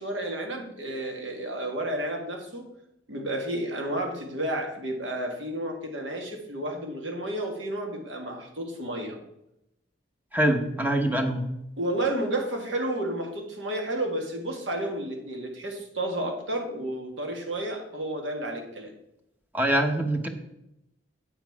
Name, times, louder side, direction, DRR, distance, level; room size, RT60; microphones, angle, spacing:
voice 1, 0.0-2.6 3.1-9.2 11.8-18.9, right 1 dB, 90° right, 2 dB, 1.9 m, -31 dB
voice 2, 10.3-11.5 19.5-20.3, right 1 dB, 10° right, 5 dB, 0.9 m, -24 dB
8.3 x 7.3 x 4.7 m, 0.86 s
head